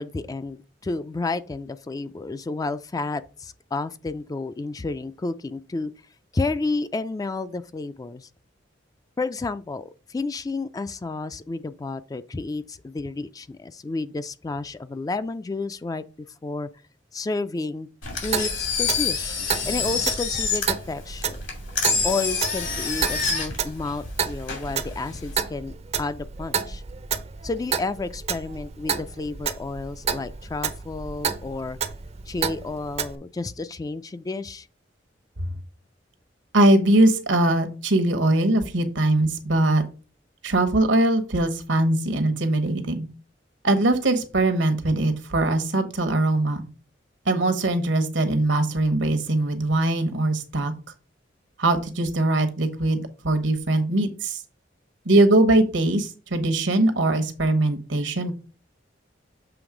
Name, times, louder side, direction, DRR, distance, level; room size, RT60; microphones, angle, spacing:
voice 1, 0.0-5.9 6.3-8.3 9.2-16.0 16.4-16.7 17.1-17.9 18.2-19.4 19.7-21.5 22.0-26.8 27.4-31.8 32.3-34.7, left 3 dB, 20° left, 0.3 m, -31 dB
Engine, 18.0-25.3, left 5 dB, 80° left, 2.5 m, -27 dB
Clock, 18.2-33.2, right 6 dB, 35° right, 0.5 m, -31 dB
voice 2, 36.5-39.8 40.4-43.0 43.6-46.6 47.2-50.7 51.6-54.4 55.0-58.3, right 2 dB, 80° right, 1.1 m, -21 dB
7.0 x 3.2 x 4.9 m
head